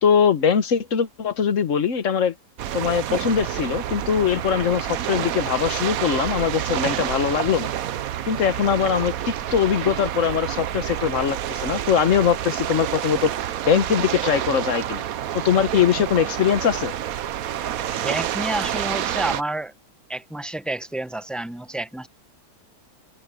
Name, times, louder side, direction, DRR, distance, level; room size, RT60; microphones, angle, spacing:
voice 1, 0.0-2.3 2.7-7.7 8.3-13.3 13.6-15.0 15.4-16.9, left 7 dB, 60° left, 1.5 m, -21 dB
sound 1, 2.6-19.4, right 11 dB, 70° right, 1.2 m, -28 dB
voice 2, 18.0-19.7 20.1-22.1, right 1 dB, ahead, 0.8 m, -29 dB
open air
omnidirectional pair, 1.6 m